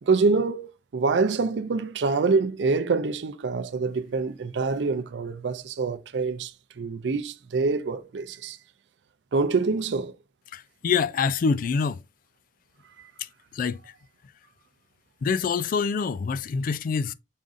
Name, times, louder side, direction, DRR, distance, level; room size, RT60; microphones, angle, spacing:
voice 1, 0.0-8.6 9.3-10.2 13.0-13.1, right 4 dB, 85° right, 0.5 m, -26 dB
voice 2, 10.5-12.0 13.2-13.3 13.5-13.8 15.2-17.1, left 5 dB, 50° left, 0.3 m, -25 dB
5.1 x 3.7 x 2.5 m
head